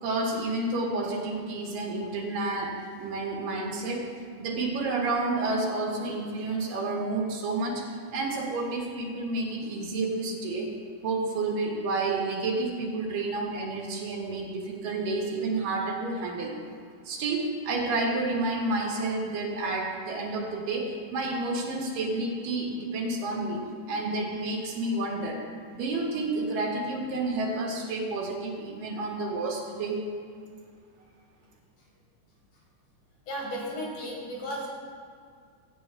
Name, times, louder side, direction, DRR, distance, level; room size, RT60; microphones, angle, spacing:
voice 1, 0.0-4.1 4.4-7.9 8.1-10.7 11.0-16.5 17.0-25.4 25.7-30.0, right 2 dB, 80° right, -2 dB, 3.3 m, -30 dB
voice 2, 33.3-34.7, equal, 65° left, -4 dB, 4.4 m, -34 dB
16.5 x 13.5 x 2.4 m, 2.2 s
omnidirectional pair, 3.8 m